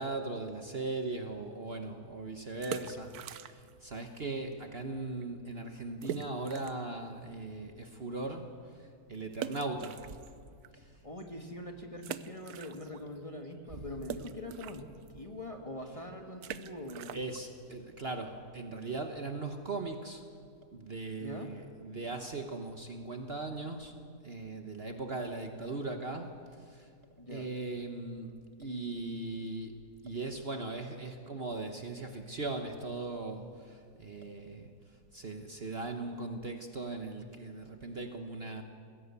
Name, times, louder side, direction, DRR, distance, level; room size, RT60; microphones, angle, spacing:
voice 1, 0.0-10.1 10.7-11.0 17.1-20.2 20.7-24.0 24.2-26.9 27.3-34.7 35.1-38.6, right 3 dB, 40° right, 5 dB, 1.2 m, -39 dB
sound 1, 2.6-3.9 4.1-4.2 4.8-4.9 5.2-5.3 6.0-6.9 7.4-7.5 9.3-10.7 11.2-11.3 12.0-13.2 13.4-19.0, right 9 dB, 75° right, 1.2 m, -43 dB
voice 2, 11.0-14.9 15.1-17.2 21.2-21.5 27.2-27.5, left 1 dB, 20° left, 3 dB, 1.5 m, -43 dB
20.5 x 16.5 x 8.3 m, 2.2 s
omnidirectional pair, 1.7 m